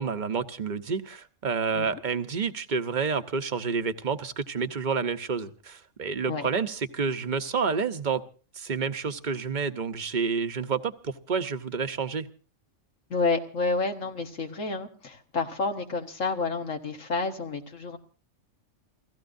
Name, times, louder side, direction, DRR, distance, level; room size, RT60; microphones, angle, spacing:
voice 1, 0.0-8.2 8.5-12.3, right 5 dB, 40° right, 9 dB, 1.0 m, -29 dB
voice 2, 13.1-18.0, left 3 dB, 80° left, 4 dB, 1.9 m, -29 dB
29.0 x 16.5 x 2.7 m, 0.36 s
omnidirectional pair, 1.3 m